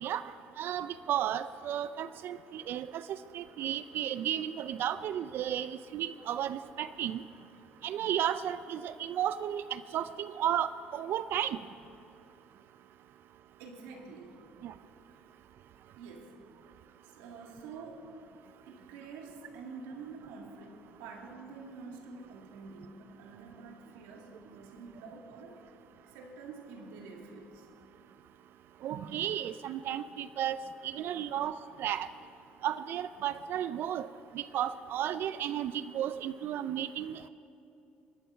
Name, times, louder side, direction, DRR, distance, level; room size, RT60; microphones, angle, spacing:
voice 1, 0.6-3.0 3.3-7.2 7.8-11.6 14.6-14.7 28.8-30.6 30.8-32.1 32.6-34.1 34.3-37.3, right 10 dB, 65° right, 13 dB, 0.5 m, -33 dB
voice 2, 13.6-14.4 15.1-15.2 16.0-16.3 17.0-18.1 18.7-25.6 26.0-27.7 31.0-31.2, right 4 dB, 90° right, 1 dB, 2.1 m, -47 dB
22.0 x 7.8 x 6.4 m, 2.8 s
supercardioid pair, 80°, 4 cm